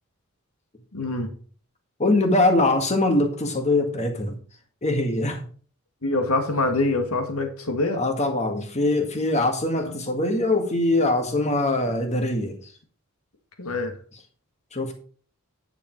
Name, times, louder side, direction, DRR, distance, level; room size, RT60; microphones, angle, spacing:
voice 1, 0.9-1.3 6.0-8.0 9.8-10.0 13.6-13.9, left 2 dB, 80° left, 2.1 m, -25 dB
voice 2, 2.0-4.4 4.8-5.4 7.9-12.6 14.7-14.9, left 2 dB, 30° left, 1.9 m, -22 dB
10.0 x 6.9 x 4.7 m
head